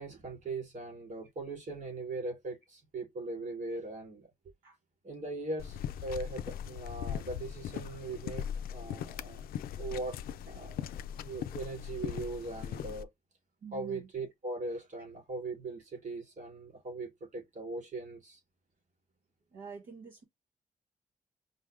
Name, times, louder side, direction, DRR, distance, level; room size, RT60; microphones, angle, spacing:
voice 1, 0.0-4.3 5.0-9.4 9.8-10.2 10.4-10.9 11.2-13.1 13.7-18.4, right 3 dB, 60° right, 3.7 m, -40 dB
sound 1, 5.6-13.0, left 9 dB, 85° left, 0.4 m, -39 dB
voice 2, 13.6-14.1 19.5-20.2, right 5 dB, 80° right, 1.5 m, -46 dB
5.4 x 2.3 x 3.4 m
supercardioid pair, 55°, 15 cm